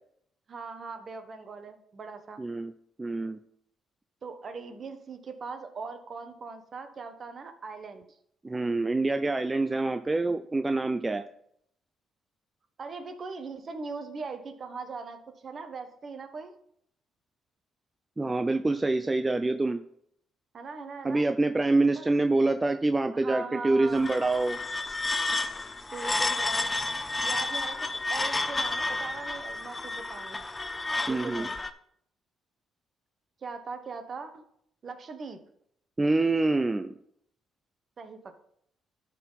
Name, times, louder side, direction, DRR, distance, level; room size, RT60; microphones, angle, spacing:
voice 1, 0.5-2.4 4.2-8.1 12.8-16.5 20.5-21.3 21.9-22.1 23.1-24.1 25.9-26.7 27.2-30.4 31.0-31.6 33.4-34.4 34.8-35.4 38.0-38.4, right 4 dB, 50° right, 8 dB, 1.1 m, -40 dB
voice 2, 2.4-2.7 3.0-3.4 8.4-11.2 18.2-19.8 21.0-24.6 31.1-31.5 36.0-36.9, right 2 dB, 20° right, 9 dB, 0.5 m, -26 dB
sound 1, 23.9-31.7, left 2 dB, 25° left, 0.6 m, -31 dB
12.0 x 4.2 x 4.1 m, 0.71 s
supercardioid pair, 60°, 0 cm